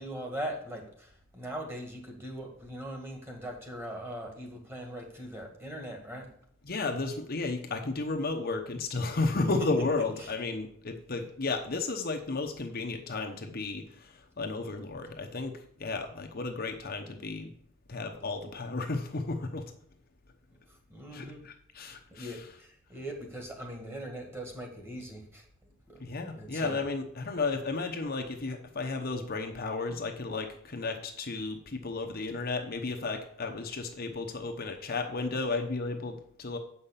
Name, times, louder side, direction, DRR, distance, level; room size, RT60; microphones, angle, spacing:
voice 1, 0.0-6.3 9.8-9.9 10.2-10.3 20.7-21.4 22.1-25.5 25.9-26.0 26.3-26.8, right 1 dB, 10° right, 1 dB, 1.9 m, -40 dB
voice 2, 6.6-17.5 17.9-19.7 21.1-22.5 26.0-36.6, left 3 dB, 45° left, 4 dB, 0.9 m, -33 dB
7.8 x 5.7 x 6.8 m, 0.64 s
head